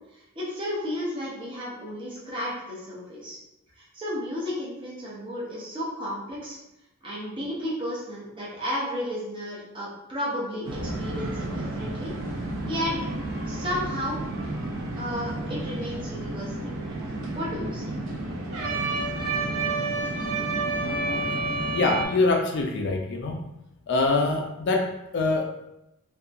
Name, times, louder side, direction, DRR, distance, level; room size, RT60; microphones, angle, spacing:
voice 1, 0.1-3.4 3.8-6.6 7.0-12.1 12.6-13.0 13.4-14.2 14.9-17.9, equal, 25° right, -7 dB, 0.6 m, -33 dB
sound 1, 10.6-22.1, right 2 dB, 70° right, 0.5 m, -30 dB
voice 2, 21.7-23.4 23.9-25.7, left 3 dB, 55° left, 2 dB, 0.3 m, -24 dB
2.7 x 2.3 x 2.5 m, 0.89 s
head